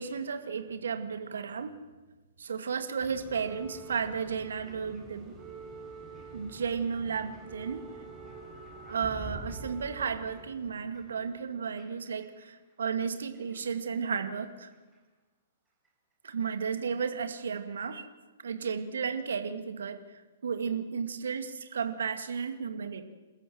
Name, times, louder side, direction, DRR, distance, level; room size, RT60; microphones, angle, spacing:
voice 1, 0.0-1.8 2.4-5.3 6.3-7.8 8.9-14.7 16.2-18.0 18.4-23.0, right 6 dB, 65° right, 8 dB, 2.3 m, -33 dB
sound 1, 3.0-12.5 13.3-14.5 14.7-14.9 15.9-16.0, right 3 dB, 15° right, 5.5 m, -46 dB
28.5 x 14.0 x 7.6 m, 1.2 s
figure-of-eight pair, 115°, 0 cm